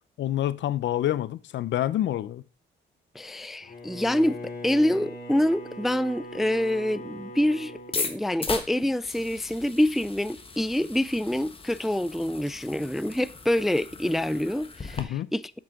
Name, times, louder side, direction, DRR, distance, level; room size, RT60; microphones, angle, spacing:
voice 1, 0.2-2.4 15.0-15.3, left 12 dB, 70° left, 0.6 m, -27 dB
voice 2, 3.2-4.4 4.6-15.4, left 1 dB, ahead, 0.3 m, -26 dB
Bowed string instrument, 3.6-9.0, left 1 dB, 45° left, 3.0 m, -41 dB
sound 1, 7.8-15.0, left 4 dB, 30° left, 1.3 m, -38 dB
7.6 x 7.4 x 3.7 m
cardioid pair, 90°, 20 cm